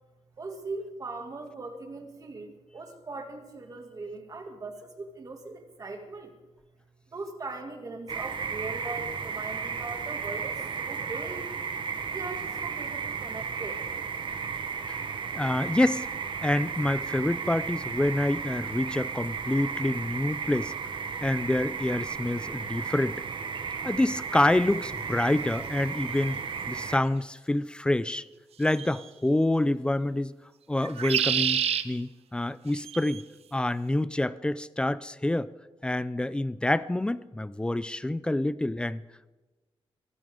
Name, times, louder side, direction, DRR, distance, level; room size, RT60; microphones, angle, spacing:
voice 1, 0.4-6.3 7.1-11.5 12.1-13.8 14.7-15.2, right 3 dB, 35° right, 4 dB, 2.3 m, -40 dB
sound 1, 8.1-27.0, right 6 dB, 55° right, 1.2 m, -34 dB
voice 2, 15.3-16.1 16.4-20.7 21.2-23.2 23.8-26.4 26.7-28.3 28.6-30.3 30.7-33.2 33.5-35.5 35.8-39.0, left 1 dB, 10° left, 17 dB, 0.4 m, -27 dB
sound 2, 26.2-26.3 28.7-29.1 30.8-31.8 32.8-33.2, right 9 dB, 85° right, 0.8 m, -28 dB
23.5 x 14.0 x 3.7 m, 1.2 s
wide cardioid pair, 155°, 10 cm